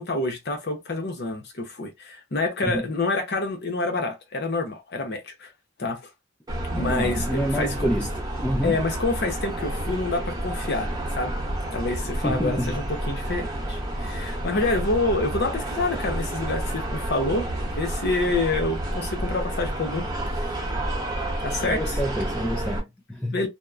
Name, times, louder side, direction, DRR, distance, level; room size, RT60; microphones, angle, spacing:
voice 1, 0.0-5.5 5.8-6.1 6.7-7.9 8.6-11.4 11.7-20.1 20.5-20.6 21.4-22.0 23.3-23.5, left 2 dB, 50° left, 0.7 m, -27 dB
sound 1, 6.5-22.8, right 1 dB, 20° right, 0.9 m, -30 dB
voice 2, 6.7-8.1 8.4-8.8 12.2-12.7 21.6-23.4, equal, 5° left, 0.4 m, -27 dB
2.8 x 2.1 x 2.4 m
head